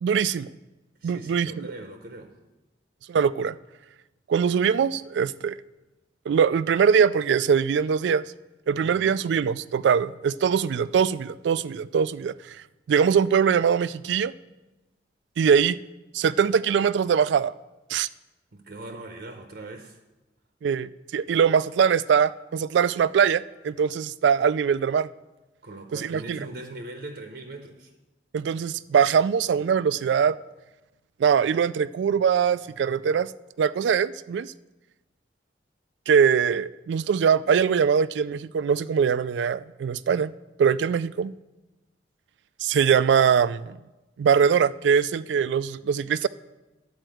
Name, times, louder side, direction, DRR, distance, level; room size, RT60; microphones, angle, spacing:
voice 1, 0.0-0.5 1.0-1.7 3.1-3.5 4.3-5.6 6.3-8.2 8.7-12.6 12.9-14.3 15.4-15.8 16.1-17.5 17.9-18.1 20.6-25.1 25.9-26.4 28.3-30.4 31.2-33.3 33.6-34.5 36.1-40.3 40.6-41.3 42.6-43.8 44.2-46.3, right 7 dB, 80° right, 0.3 m, -22 dB
voice 2, 1.0-2.3 8.8-9.2 18.5-20.0 25.6-27.9, right 2 dB, 65° right, 0.8 m, -40 dB
10.5 x 4.5 x 7.7 m
head